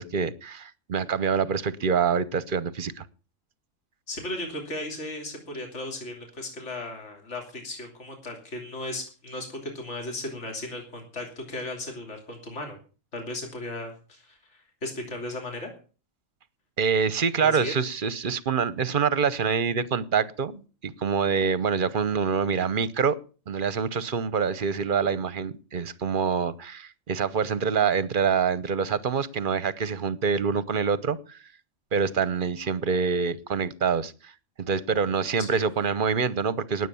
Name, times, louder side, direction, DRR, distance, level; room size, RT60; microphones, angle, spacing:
voice 1, 0.0-3.1 16.8-23.2 23.5-31.4 31.9-34.3 34.6-36.9, right 6 dB, 45° right, 1.0 m, -26 dB
voice 2, 4.1-12.8 13.1-15.7 17.4-17.7 35.4-35.6, left 1 dB, 60° left, 3.5 m, -36 dB
19.5 x 8.1 x 7.0 m
omnidirectional pair, 1.4 m